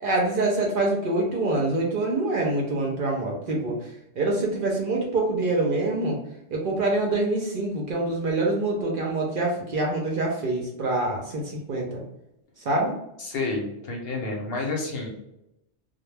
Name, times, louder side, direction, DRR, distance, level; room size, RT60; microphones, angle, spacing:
voice 1, 0.0-6.2 6.5-12.0 12.6-13.0, right 2 dB, 60° right, -1 dB, 0.6 m, -25 dB
voice 2, 13.2-15.1, left 3 dB, 60° left, 0 dB, 0.8 m, -29 dB
2.1 x 2.1 x 3.1 m, 0.84 s
omnidirectional pair, 1.2 m